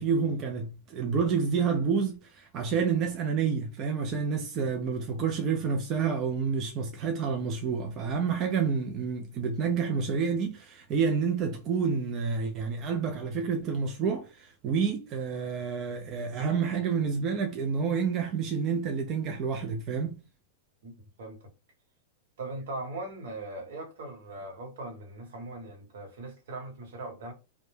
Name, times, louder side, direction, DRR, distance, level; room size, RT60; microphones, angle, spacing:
voice 1, 0.0-20.2, right 6 dB, 30° right, 0.3 m, -29 dB
voice 2, 22.4-27.3, right 2 dB, 75° right, 1.0 m, -39 dB
2.2 x 2.0 x 3.1 m
supercardioid pair, 155°, 0 cm